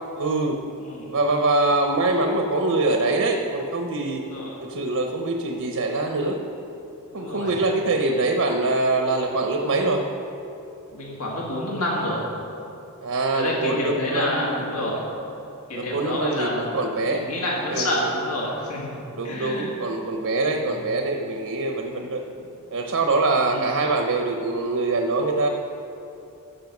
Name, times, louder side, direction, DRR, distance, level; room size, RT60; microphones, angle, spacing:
voice 1, 0.2-0.6 1.1-4.2 4.6-6.4 7.1-10.0 13.0-14.7 15.7-17.2 17.7-18.1 19.1-22.2 22.7-25.5, right 2 dB, 80° right, 3 dB, 0.8 m, -24 dB
voice 2, 4.2-4.6 7.1-7.6 10.9-12.2 13.3-15.0 15.7-16.6 17.0-19.0 19.2-19.7 20.5-20.8 22.4-22.5 23.5-23.7, left 1 dB, 80° left, -3 dB, 1.8 m, -28 dB
14.5 x 5.7 x 6.0 m, 2.8 s
head